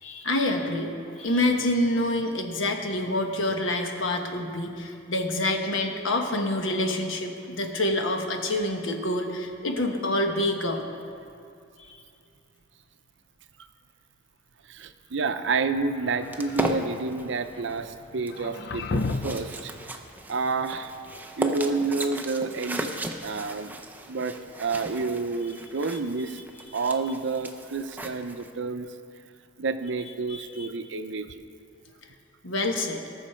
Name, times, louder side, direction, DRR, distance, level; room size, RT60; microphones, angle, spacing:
voice 1, 0.0-10.8 11.8-11.9 30.3-30.7 32.4-33.0, left 1 dB, 80° left, 4 dB, 1.2 m, -27 dB
voice 2, 14.7-19.7 20.3-20.9 21.4-23.8 24.1-26.4 26.7-28.9 29.6-31.4, right 4 dB, 65° right, 9 dB, 0.6 m, -29 dB
sound 1, 15.9-16.8 18.3-19.5, left 3 dB, 55° left, 0.5 m, -32 dB
sound 2, 16.3-28.5, right 1 dB, 10° right, 0.6 m, -36 dB
19.0 x 6.5 x 4.4 m, 2.5 s
head